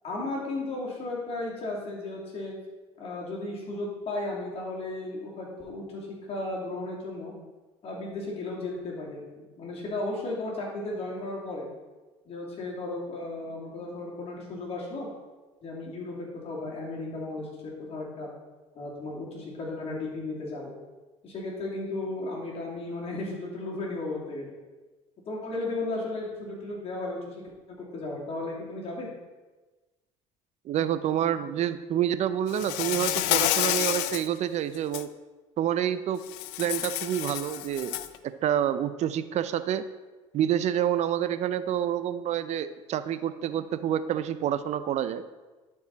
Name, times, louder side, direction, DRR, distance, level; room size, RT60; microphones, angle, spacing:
voice 1, 0.0-2.5 3.0-7.3 7.8-11.7 12.2-15.1 15.6-18.3 18.7-20.7 21.2-24.5 25.3-27.3 27.7-29.1, left 2 dB, 45° left, -3 dB, 2.8 m, -35 dB
voice 2, 30.7-35.1 35.6-36.2 36.6-38.0 38.2-39.8 40.3-45.2, right 10 dB, 55° right, 13 dB, 0.5 m, -28 dB
Insect, 32.5-34.3 34.7-35.0 36.3-38.2, left 14 dB, 85° left, 0.4 m, -29 dB
11.0 x 4.7 x 4.0 m, 1.2 s
supercardioid pair, 90°, 14 cm